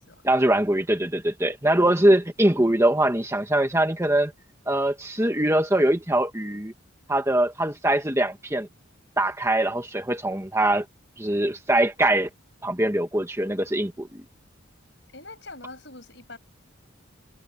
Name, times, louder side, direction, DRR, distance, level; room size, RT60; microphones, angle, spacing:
voice 1, 0.2-4.3 4.7-6.7 7.1-8.7 9.2-10.9 11.2-12.3 12.6-14.2, right 1 dB, 15° right, 1.6 m, -22 dB
voice 2, 15.1-16.4, left 3 dB, 60° left, 6.9 m, -43 dB
head